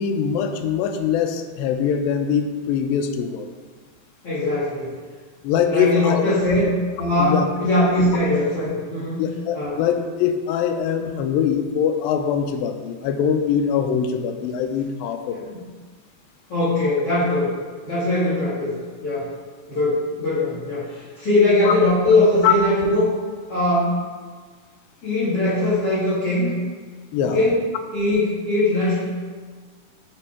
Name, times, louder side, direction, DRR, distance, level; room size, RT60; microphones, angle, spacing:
voice 1, 0.0-3.5 5.4-6.2 7.2-7.5 9.2-15.5 21.7-21.8 22.4-22.5 27.1-27.4, left 8 dB, 80° left, 6 dB, 2.3 m, -22 dB
voice 2, 4.2-4.9 5.6-6.7 7.0-9.2 9.5-9.8 15.3-15.6 16.5-17.5 17.8-18.7 19.0-19.3 19.7-23.1 23.5-24.0 25.0-26.5 27.2-27.5 27.9-29.0, left 2 dB, 45° left, -12 dB, 2.7 m, -21 dB
7.6 x 4.2 x 4.7 m, 1.5 s
omnidirectional pair, 4.3 m